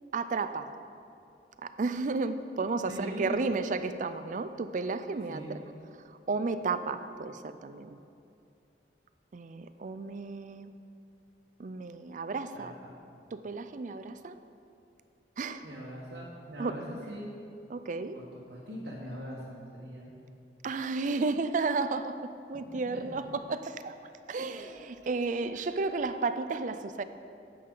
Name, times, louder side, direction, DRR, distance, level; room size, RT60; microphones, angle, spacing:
voice 1, 0.1-0.7 1.6-5.6 6.1-8.0 9.3-10.7 11.6-12.7 13.3-14.4 15.4-15.7 16.6-16.7 17.7-18.2 20.6-24.0 24.3-27.0, right 3 dB, 45° right, 11 dB, 0.4 m, -33 dB
voice 2, 2.9-3.6 5.3-5.5 12.5-12.9 15.6-17.3 18.1-20.1 24.0-24.6 25.5-25.7, equal, 80° right, -6 dB, 1.4 m, -41 dB
11.0 x 8.5 x 3.9 m, 2.6 s
head